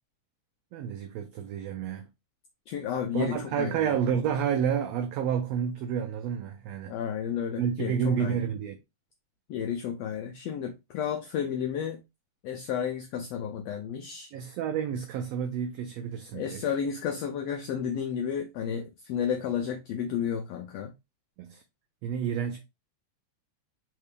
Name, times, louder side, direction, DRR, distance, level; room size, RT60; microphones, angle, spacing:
voice 1, 0.7-2.1 3.1-6.9 7.6-8.8 14.3-16.7 21.4-21.6 22.0-22.6, right 8 dB, 85° right, 1.4 m, -30 dB
voice 2, 2.7-3.7 6.9-8.4 9.5-12.0 12.4-14.3 16.3-20.9, left 8 dB, 85° left, 1.4 m, -32 dB
4.4 x 3.2 x 3.3 m
omnidirectional pair, 3.5 m